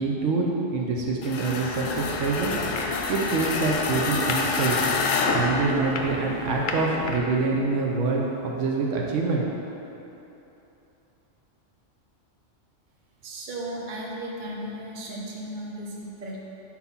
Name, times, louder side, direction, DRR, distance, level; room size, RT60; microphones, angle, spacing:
voice 1, 0.0-2.5 3.1-4.8 5.3-9.4, right 4 dB, 75° right, -2 dB, 1.0 m, -25 dB
sound 1, 1.2-6.4, left 4 dB, 85° left, 1.0 m, -28 dB
sound 2, 1.8-7.2, left 3 dB, 65° left, 0.5 m, -33 dB
voice 2, 13.2-16.4, right 1 dB, 45° right, -3 dB, 0.8 m, -35 dB
4.5 x 4.0 x 5.4 m, 3.0 s
omnidirectional pair, 1.3 m